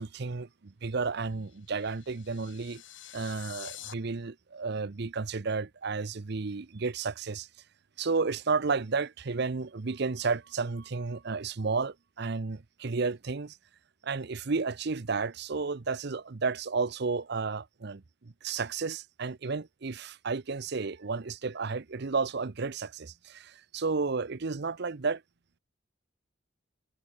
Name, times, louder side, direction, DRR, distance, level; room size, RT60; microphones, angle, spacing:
voice 1, 0.0-2.8 3.1-7.5 8.0-13.6 14.0-25.2, right 4 dB, 55° right, 0.7 m, -32 dB
sound 1, 1.3-3.9, left 11 dB, 70° left, 7.7 m, -47 dB
head